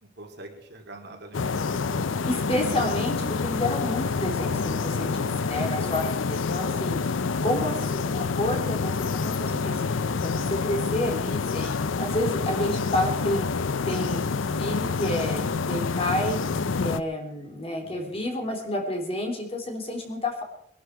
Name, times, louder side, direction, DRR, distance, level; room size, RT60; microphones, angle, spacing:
voice 1, 0.0-1.9 6.3-6.8 17.8-18.2, right 2 dB, 60° right, 2 dB, 3.0 m, -45 dB
sound 1, 1.3-17.0, left 4 dB, 85° left, 0.6 m, -27 dB
voice 2, 2.2-7.0 7.4-9.8 10.2-13.5 13.8-16.4 16.8-20.4, left 1 dB, 30° left, 2 dB, 3.3 m, -30 dB
22.0 x 12.0 x 4.7 m, 0.73 s
head